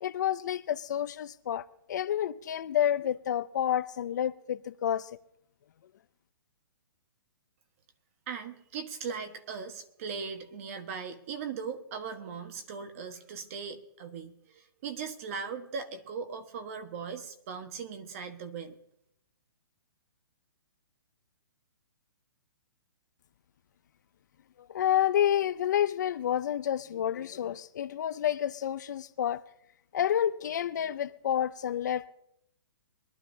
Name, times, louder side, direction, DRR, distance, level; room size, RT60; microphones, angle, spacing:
voice 1, 0.0-5.1 24.7-29.4 29.9-32.1, left 10 dB, 50° left, 0.5 m, -29 dB
voice 2, 8.3-18.8, right 6 dB, 35° right, 1.4 m, -39 dB
22.5 x 12.5 x 2.8 m
hypercardioid pair, 165°, 13 cm